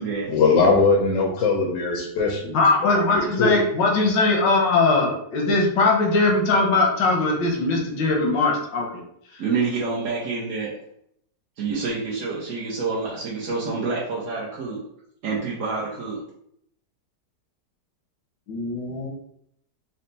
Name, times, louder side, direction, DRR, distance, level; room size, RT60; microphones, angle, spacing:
voice 1, 0.3-2.6 2.9-3.6, left 4 dB, 65° left, 0.9 m, -20 dB
voice 2, 2.5-9.0 9.3-9.5 18.5-19.1, left 3 dB, 85° left, 1.5 m, -20 dB
voice 3, 9.4-10.7 11.6-14.8 15.2-16.2, right 4 dB, 60° right, 0.9 m, -27 dB
4.3 x 2.1 x 3.9 m
omnidirectional pair, 1.9 m